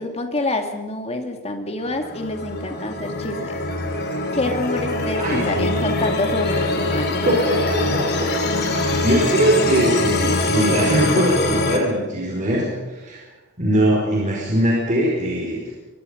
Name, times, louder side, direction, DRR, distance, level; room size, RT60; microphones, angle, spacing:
voice 1, 0.0-3.6 4.3-7.3, left 2 dB, 30° left, 4 dB, 2.5 m, -27 dB
sound 1, 1.8-11.8, left 2 dB, 50° left, 3.0 m, -23 dB
voice 2, 5.2-5.6 7.3-8.3 8.7-13.2 13.6-15.7, right 1 dB, 35° right, -3 dB, 4.9 m, -21 dB
24.0 x 23.0 x 5.3 m, 1.2 s
head